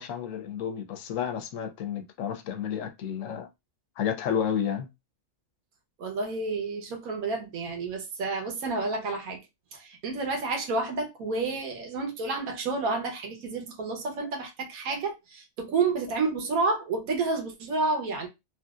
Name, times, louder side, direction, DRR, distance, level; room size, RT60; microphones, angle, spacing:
voice 1, 0.0-3.5 4.0-4.9, left 8 dB, 70° left, 0.9 m, -31 dB
voice 2, 6.0-9.4 9.7-18.3, right 3 dB, 90° right, 1.3 m, -30 dB
3.1 x 2.6 x 2.4 m
omnidirectional pair, 1.5 m